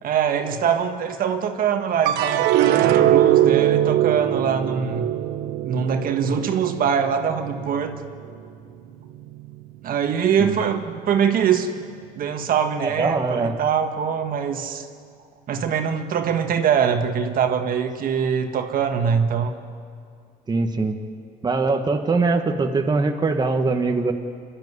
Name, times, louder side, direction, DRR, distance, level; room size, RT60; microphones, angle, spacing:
voice 1, 0.0-5.1 5.6-7.9 9.8-11.7 12.1-14.9 15.5-19.6, right 7 dB, 60° right, 6 dB, 1.6 m, -23 dB
sound 1, 2.1-8.5 8.9-9.6, right 12 dB, 90° right, 1.1 m, -21 dB
voice 2, 12.8-13.6 20.5-21.0 21.4-24.1, right 3 dB, 25° right, 4 dB, 1.4 m, -22 dB
25.5 x 12.0 x 9.6 m, 2.2 s
cardioid pair, 110°, 17 cm